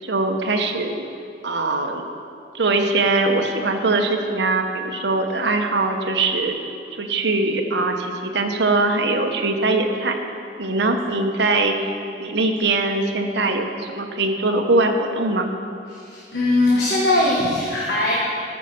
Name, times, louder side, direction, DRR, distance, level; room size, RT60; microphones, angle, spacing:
voice 1, 0.0-1.0 1.4-2.0 2.5-6.6 7.0-10.2 10.6-11.7 12.2-15.5, right 2 dB, 75° right, 4 dB, 0.9 m, -21 dB
voice 2, 15.9-18.1, left 2 dB, 65° left, -4 dB, 1.3 m, -20 dB
13.0 x 5.4 x 6.7 m, 2.6 s
head